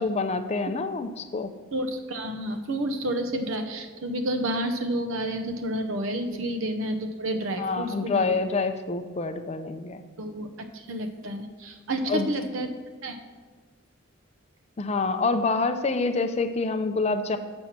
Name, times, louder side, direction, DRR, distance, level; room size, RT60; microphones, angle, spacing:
voice 1, 0.0-1.5 6.3-6.4 7.6-10.0 12.1-12.3 14.8-17.4, left 3 dB, 30° left, 8 dB, 0.4 m, -27 dB
voice 2, 1.7-8.4 10.2-12.7 13.0-13.2, right 1 dB, 75° right, 6 dB, 0.7 m, -30 dB
7.3 x 5.3 x 5.8 m, 1.5 s
head